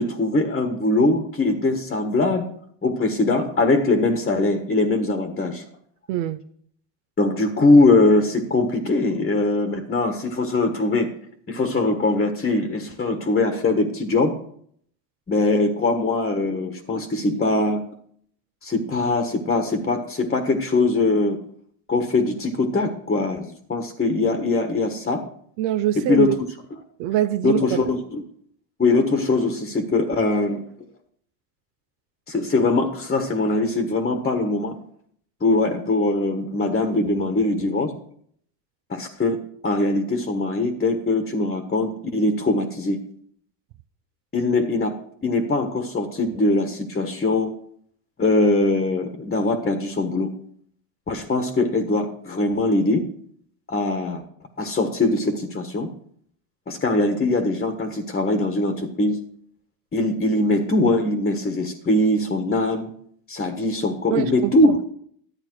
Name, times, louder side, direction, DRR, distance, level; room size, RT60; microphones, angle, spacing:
voice 1, 0.0-2.5 2.8-5.6 7.2-11.1 11.5-14.4 15.3-17.8 18.6-21.4 21.9-25.2 25.9-26.4 27.4-28.2 28.8-30.6 32.3-34.8 35.4-37.9 38.9-43.0 44.3-47.5 48.2-50.3 51.1-53.1 53.7-54.2 54.6-55.9 56.7-59.2 59.9-62.9 63.3-64.8, left 2 dB, 20° left, 6 dB, 1.4 m, -22 dB
voice 2, 6.1-6.4 25.6-26.3 27.0-27.8 64.1-64.7, right 12 dB, 60° right, 12 dB, 0.7 m, -23 dB
12.0 x 8.9 x 4.7 m, 0.64 s
supercardioid pair, 100°, 49 cm